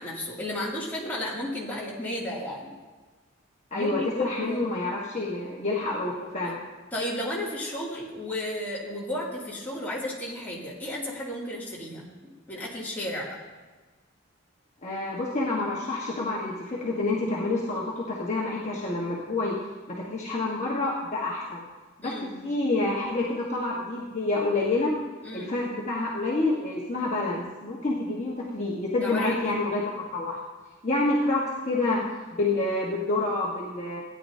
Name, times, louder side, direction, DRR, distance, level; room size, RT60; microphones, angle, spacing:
voice 1, 0.0-2.7 3.7-4.7 6.9-12.1 12.5-13.4 22.0-22.3 25.2-25.5 29.0-29.6, left 1 dB, 10° left, -7 dB, 2.7 m, -33 dB
voice 2, 3.7-6.6 14.8-19.5 19.9-21.6 22.0-24.9 25.3-30.4 30.8-32.0 32.3-34.0, left 2 dB, 35° left, -5 dB, 1.5 m, -28 dB
17.0 x 9.9 x 2.8 m, 1.3 s
head